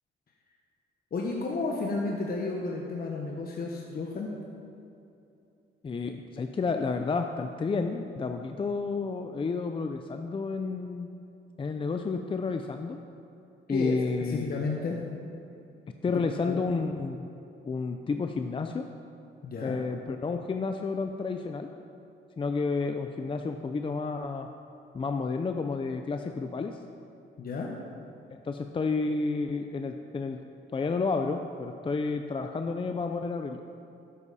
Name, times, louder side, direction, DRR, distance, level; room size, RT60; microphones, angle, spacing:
voice 1, 1.1-4.3 13.7-15.0 16.4-16.6 19.4-19.8 27.4-27.7, left 3 dB, 50° left, -1 dB, 1.2 m, -32 dB
voice 2, 5.8-11.1 11.6-13.0 13.7-14.6 16.0-17.3 17.7-18.9 19.6-21.7 22.4-24.5 24.9-26.8 28.4-30.4 30.7-33.6, left 4 dB, 25° left, 6 dB, 0.5 m, -31 dB
12.5 x 9.8 x 4.2 m, 2.7 s
cardioid pair, 90°, 20 cm